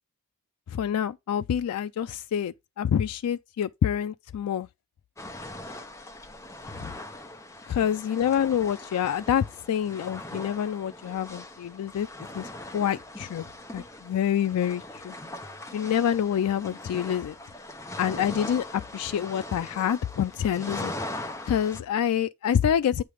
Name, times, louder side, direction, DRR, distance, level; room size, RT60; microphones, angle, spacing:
voice 1, 0.7-4.7 6.8-6.9 7.7-12.1 12.3-13.5 13.7-15.1 15.7-17.3 18.0-20.9 21.5-23.0, left 9 dB, 85° left, 0.3 m, -27 dB
sound 1, 5.2-21.8, left 1 dB, 15° left, 0.6 m, -40 dB
8.4 x 3.3 x 4.9 m
head